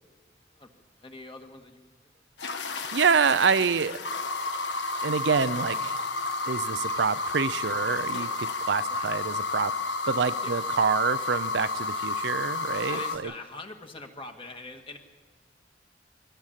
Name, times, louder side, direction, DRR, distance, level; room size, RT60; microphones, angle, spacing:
voice 1, 0.5-2.0 8.9-9.1 10.4-10.6 12.8-15.0, left 3 dB, 30° left, 4 dB, 1.9 m, -43 dB
sound 1, 2.4-13.2, left 3 dB, 80° left, 1.5 m, -31 dB
voice 2, 2.6-4.0 5.0-5.9 6.5-9.7 10.1-13.3, right 5 dB, 80° right, 14 dB, 0.6 m, -26 dB
23.5 x 17.0 x 7.4 m, 1.5 s
head